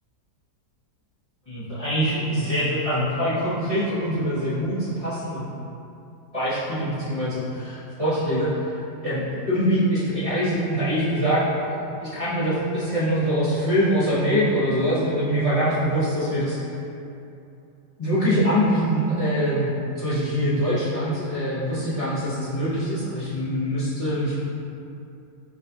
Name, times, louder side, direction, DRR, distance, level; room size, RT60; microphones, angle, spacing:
voice 1, 1.5-5.5 6.3-8.5 9.0-16.6 18.0-24.4, equal, 40° left, -12 dB, 0.5 m, -24 dB
6.0 x 2.3 x 2.7 m, 2.7 s
omnidirectional pair, 1.7 m